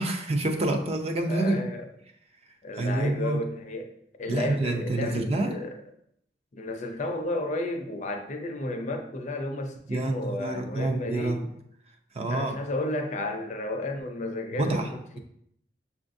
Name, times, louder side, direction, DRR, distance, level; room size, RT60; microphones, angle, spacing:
voice 1, 0.0-1.6 2.8-3.4 4.3-5.6 9.9-11.4 12.1-12.6 14.5-14.9, right 2 dB, 35° right, 5 dB, 0.5 m, -27 dB
voice 2, 1.3-1.9 2.6-3.9 4.2-5.8 6.5-11.4 12.3-15.2, left 1 dB, 45° left, 4 dB, 0.5 m, -32 dB
6.8 x 2.4 x 2.6 m, 0.73 s
head